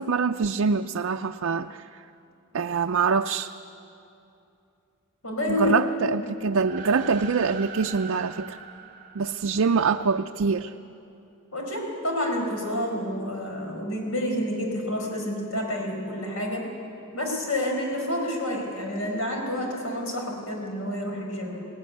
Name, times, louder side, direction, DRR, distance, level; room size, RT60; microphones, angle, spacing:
voice 1, 0.0-2.0 2.5-3.5 5.5-8.6 9.1-10.7, right 5 dB, 85° right, 5 dB, 0.5 m, -25 dB
voice 2, 5.2-5.8 6.2-6.3 11.5-16.6 17.1-21.6, left 1 dB, 90° left, 1 dB, 5.3 m, -29 dB
sound 1, 6.5-10.1, right 6 dB, 45° right, 3.1 m, -42 dB
21.0 x 18.5 x 9.7 m, 2.7 s
head